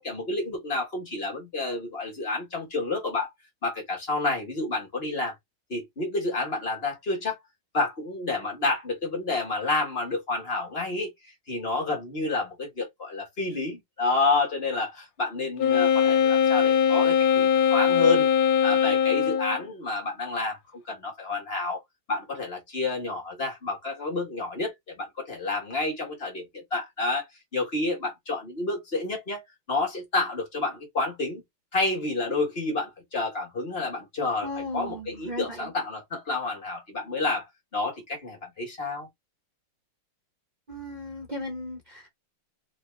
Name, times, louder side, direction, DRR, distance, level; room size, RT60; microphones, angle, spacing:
voice 1, 0.0-3.3 3.6-5.3 5.7-7.4 7.7-11.1 11.5-18.3 18.6-21.8 22.1-27.2 27.5-31.4 31.7-37.5 37.7-39.1, left 3 dB, 30° left, 1.6 m, -29 dB
Wind instrument woodwind instrument, 15.6-19.6, left 7 dB, 80° left, 1.6 m, -21 dB
voice 2, 34.4-35.7 40.7-42.1, left 1 dB, 90° right, 0.4 m, -36 dB
4.2 x 3.1 x 3.2 m
omnidirectional pair, 2.4 m